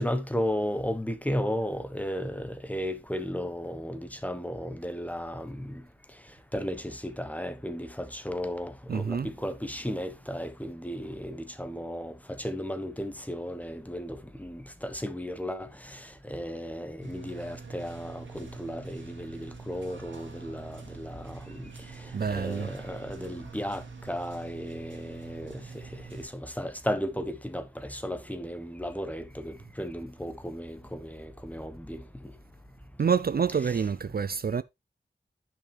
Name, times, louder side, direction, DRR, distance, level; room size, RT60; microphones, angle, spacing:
voice 1, 0.0-5.8 6.5-12.1 12.4-16.0 16.2-21.7 22.3-23.8 24.1-25.5 26.1-32.0 33.6-33.7, equal, 10° left, 1.2 m, -34 dB
voice 2, 8.9-9.3 22.1-22.7 33.0-34.6, right 6 dB, 55° right, 0.4 m, -27 dB
sound 1, 17.0-26.3, right 4 dB, 85° right, 2.2 m, -45 dB
10.5 x 6.0 x 3.3 m
wide cardioid pair, 65°, 19 cm